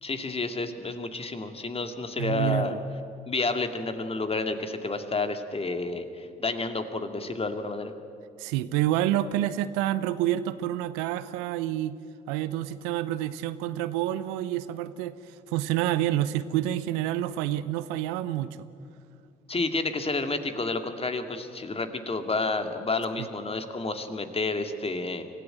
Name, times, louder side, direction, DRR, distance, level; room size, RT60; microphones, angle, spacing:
voice 1, 0.0-2.8 3.3-7.9 19.5-25.2, left 3 dB, 30° left, 7 dB, 2.2 m, -30 dB
voice 2, 2.2-2.8 8.4-11.9 12.3-18.7 23.2-23.3, right 13 dB, 75° right, 15 dB, 0.7 m, -28 dB
24.0 x 15.0 x 9.0 m, 2.6 s
hypercardioid pair, 50°, 21 cm